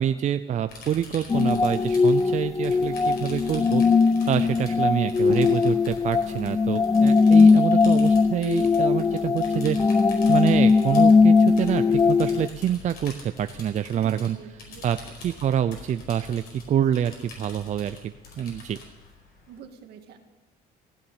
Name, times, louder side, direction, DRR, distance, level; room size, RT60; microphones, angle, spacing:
voice 1, 0.0-3.8 4.3-9.8 10.3-14.4 14.8-18.8, right 10 dB, 45° right, 10 dB, 0.5 m, -27 dB
sound 1, 0.7-19.6, left 4 dB, 65° left, 4.9 m, -45 dB
sound 2, 1.3-12.5, left 4 dB, 20° left, 0.5 m, -19 dB
voice 2, 13.9-15.2 19.5-20.2, right 7 dB, 75° right, 5 dB, 1.8 m, -47 dB
15.5 x 7.1 x 9.8 m, 1.1 s
cardioid pair, 110°, 17 cm